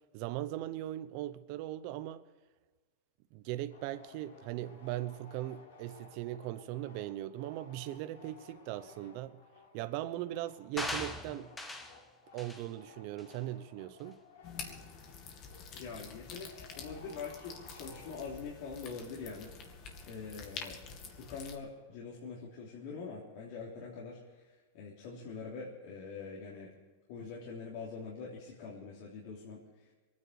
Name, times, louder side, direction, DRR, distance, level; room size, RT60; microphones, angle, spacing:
voice 1, 0.1-2.2 3.3-9.4 9.7-11.5 12.3-14.2, right 14 dB, 55° right, 0.9 m, -39 dB
sound 1, 3.7-18.7, left 4 dB, 80° left, 4.6 m, -58 dB
sound 2, 10.8-12.0 12.4-12.6 13.2-13.3, left 1 dB, 10° left, 1.6 m, -39 dB
sound 3, 14.4-21.5, left 5 dB, 40° left, 2.4 m, -48 dB
voice 2, 15.7-20.8 21.1-26.7 27.1-29.9, left 5 dB, 60° left, 3.4 m, -44 dB
22.5 x 9.9 x 6.5 m
supercardioid pair, 140°, 0 cm